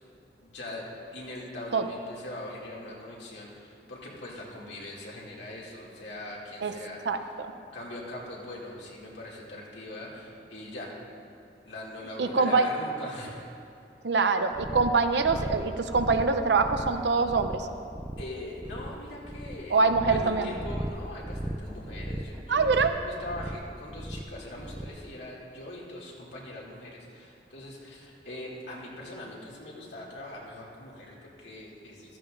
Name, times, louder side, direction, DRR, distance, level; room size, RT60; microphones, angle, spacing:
voice 1, 0.4-7.3 7.7-11.0 11.7-13.5 18.2-32.2, left 1 dB, 85° left, -4 dB, 2.5 m, -41 dB
voice 2, 7.1-7.5 12.2-12.7 14.0-17.7 19.7-20.5 22.5-22.9, right 4 dB, 80° right, 8 dB, 0.6 m, -24 dB
sound 1, 14.5-25.1, right 1 dB, 5° right, 0.3 m, -37 dB
15.0 x 13.5 x 2.6 m, 2.5 s
head